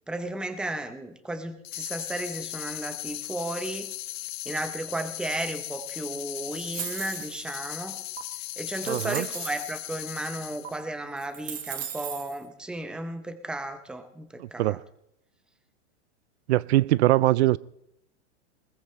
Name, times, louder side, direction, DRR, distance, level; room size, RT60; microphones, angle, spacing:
voice 1, 0.1-3.9 4.5-8.0 8.6-14.8, right 1 dB, ahead, 0.8 m, -34 dB
sound 1, 1.6-10.8, left 17 dB, 55° left, 0.8 m, -37 dB
sound 2, 6.5-7.5 8.2-8.3 8.8-9.7 10.6-10.7 11.2-12.4, right 9 dB, 25° right, 1.2 m, -37 dB
voice 2, 8.9-9.3 14.4-14.8 16.5-17.6, right 16 dB, 65° right, 0.5 m, -22 dB
20.5 x 20.0 x 3.2 m
supercardioid pair, 155°, 36 cm